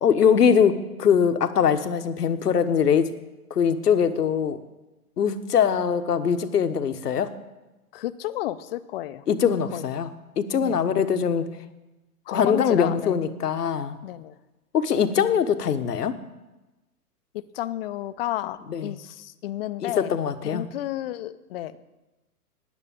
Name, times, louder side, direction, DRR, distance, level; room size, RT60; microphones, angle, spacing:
voice 1, 0.0-3.1 3.5-4.6 5.2-7.3 9.3-10.1 10.4-11.5 12.3-14.0 14.7-16.2 18.7-18.9 19.8-20.7, left 7 dB, 85° left, 9 dB, 1.2 m, -22 dB
voice 2, 7.9-9.2 9.7-9.9 10.6-10.8 12.3-13.2 14.0-14.3 17.3-20.2 20.4-21.8, left 14 dB, 40° left, 14 dB, 0.7 m, -32 dB
9.9 x 9.8 x 8.6 m, 1.1 s
hypercardioid pair, 130°, 46 cm